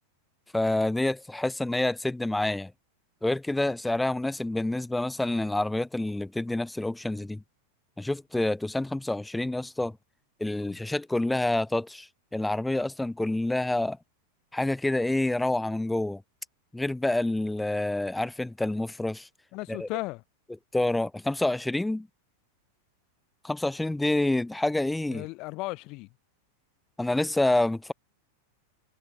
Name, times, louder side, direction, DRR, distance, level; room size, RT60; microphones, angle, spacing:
voice 1, 0.5-2.7 3.2-7.4 8.0-10.0 10.4-14.0 14.5-16.2 16.7-19.3 19.7-19.9 20.7-22.1 23.4-25.3 27.0-27.9, left 2 dB, 5° left, 0.6 m, -27 dB
voice 2, 19.5-20.2 25.1-26.1, left 24 dB, 40° left, 0.9 m, -35 dB
figure-of-eight pair, 90°, 0 cm